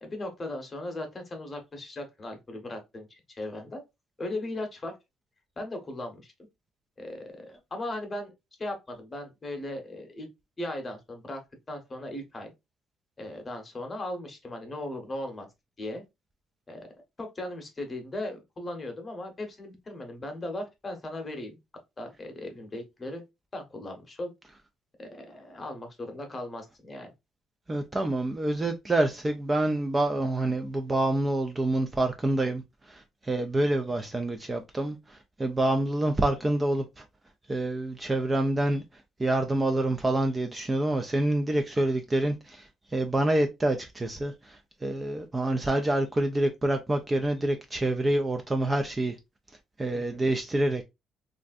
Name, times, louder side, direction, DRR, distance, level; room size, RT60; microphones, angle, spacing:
voice 1, 0.0-3.8 4.2-4.9 5.6-6.3 7.0-10.3 10.6-11.4 11.7-12.5 13.2-15.5 15.8-16.0 16.7-16.9 17.2-21.6 22.0-23.2 23.5-24.3 25.0-27.1 49.9-50.2, left 1 dB, 25° left, 0.9 m, -37 dB
voice 2, 27.7-37.0 37.5-38.8 39.2-49.2 49.8-50.8, right 1 dB, 15° right, 0.3 m, -27 dB
3.2 x 2.5 x 2.3 m
cardioid pair, 140°, 0 cm